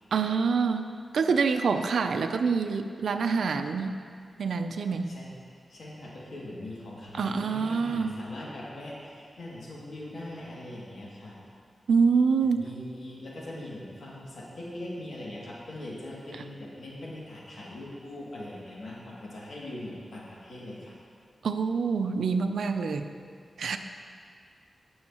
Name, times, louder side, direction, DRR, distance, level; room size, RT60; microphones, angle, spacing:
voice 1, 0.1-4.0 4.4-5.2 7.2-8.2 11.9-12.6 21.4-23.1 23.6-23.8, right 5 dB, 90° right, 7 dB, 0.5 m, -26 dB
voice 2, 5.7-11.4 12.4-21.0, left 1 dB, 75° left, -6 dB, 2.5 m, -41 dB
17.5 x 6.4 x 3.0 m, 2.1 s
cardioid pair, 75°, 0 cm